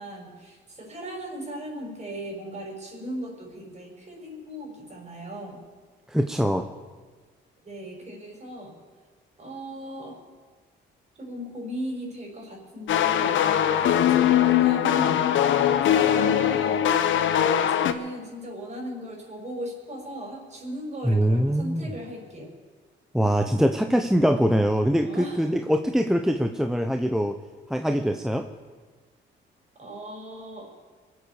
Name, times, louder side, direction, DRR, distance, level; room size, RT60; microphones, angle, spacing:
voice 1, 0.0-5.6 7.6-8.7 9.4-10.2 11.2-13.5 13.7-15.3 15.8-16.9 17.3-22.5 25.0-25.4 29.8-30.7, equal, 35° right, 0 dB, 6.0 m, -37 dB
voice 2, 6.1-6.7 21.0-21.9 23.1-27.4 27.7-28.5, equal, ahead, 6 dB, 0.8 m, -23 dB
sound 1, 12.9-17.9, left 10 dB, 75° left, 1.0 m, -21 dB
23.5 x 8.1 x 6.9 m, 1.4 s
cardioid pair, 90°, 20 cm